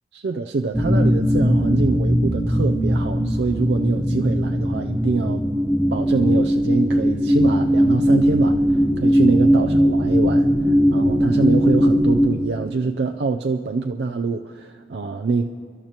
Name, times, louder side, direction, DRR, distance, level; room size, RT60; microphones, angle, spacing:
voice 1, 0.1-5.4 5.9-15.5, right 4 dB, 75° right, 5 dB, 0.4 m, -25 dB
sound 1, 0.7-12.3, equal, 5° right, 0.7 m, -19 dB
29.5 x 12.0 x 2.9 m, 2.3 s
head